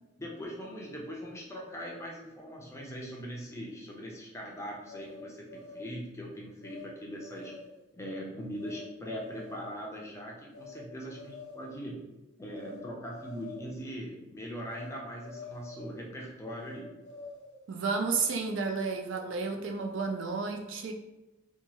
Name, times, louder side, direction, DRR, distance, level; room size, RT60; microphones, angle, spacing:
voice 1, 0.2-7.5 7.9-12.0 12.4-16.9, equal, 15° left, -2 dB, 0.4 m, -41 dB
sound 1, 4.9-6.0 6.6-6.9 7.2-7.8 8.6-8.8 9.2-9.7 10.5-10.8 11.1-11.8 12.5-12.8 13.1-13.7 14.7-14.9 15.2-16.0 16.6-17.6, left 3 dB, 85° left, 0.6 m, -47 dB
voice 2, 17.7-20.9, right 4 dB, 70° right, 3 dB, 0.4 m, -31 dB
2.9 x 2.2 x 2.7 m, 1.0 s
head